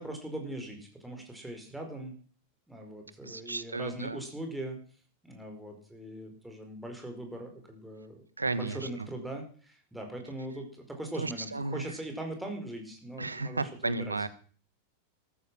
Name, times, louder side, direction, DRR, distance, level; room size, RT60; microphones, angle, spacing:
voice 1, 0.0-2.1 2.7-4.8 5.2-8.2 8.5-14.3, right 1 dB, 5° right, 3 dB, 4.9 m, -40 dB
voice 2, 3.2-4.2 8.4-9.1 11.2-11.8 13.2-14.3, right 3 dB, 80° right, 16 dB, 1.3 m, -34 dB
14.0 x 13.5 x 6.2 m, 0.43 s
figure-of-eight pair, 90°, 0 cm